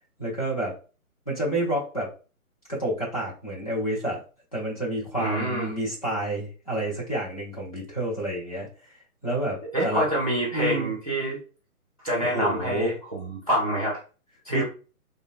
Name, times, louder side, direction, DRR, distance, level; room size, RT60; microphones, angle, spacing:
voice 1, 0.2-0.7 1.3-2.1 2.7-4.2 4.5-8.7 9.2-10.0 10.5-10.9 12.3-12.9 14.5-14.6, right 1 dB, 25° left, -6 dB, 0.8 m, -29 dB
voice 2, 5.2-5.7 9.7-11.4 12.0-14.0 14.5-14.6, right 1 dB, 25° right, -5 dB, 0.5 m, -26 dB
3.6 x 2.1 x 2.4 m, 0.35 s
hypercardioid pair, 170°, 44 cm